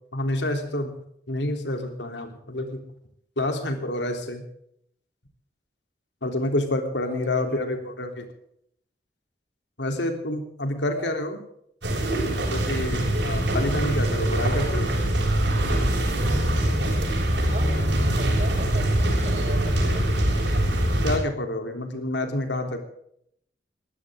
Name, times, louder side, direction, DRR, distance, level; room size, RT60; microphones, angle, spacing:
voice 1, 0.1-0.9 1.3-2.8 3.4-4.4 6.2-8.3 9.8-11.4 12.4-14.9 21.0-22.8, left 1 dB, 85° left, 5 dB, 3.4 m, -28 dB
voice 2, 7.1-7.9 10.9-11.1 17.3-20.1, right 1 dB, 40° right, 2 dB, 6.2 m, -39 dB
sound 1, 11.8-21.2, right 1 dB, 85° right, 7.0 m, -23 dB
22.5 x 16.0 x 3.7 m, 0.70 s
head